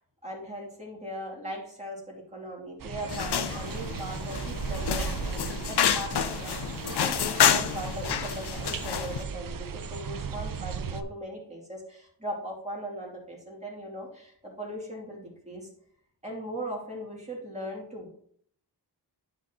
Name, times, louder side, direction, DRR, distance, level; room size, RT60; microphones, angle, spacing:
voice 1, 0.2-15.7 16.2-18.1, equal, 15° right, -4 dB, 2.6 m, -39 dB
sound 1, 2.8-11.0, right 5 dB, 55° right, 0.7 m, -36 dB
sound 2, 3.1-9.2, left 8 dB, 70° left, 0.7 m, -28 dB
11.0 x 5.1 x 2.9 m, 0.63 s
wide cardioid pair, 80°, 41 cm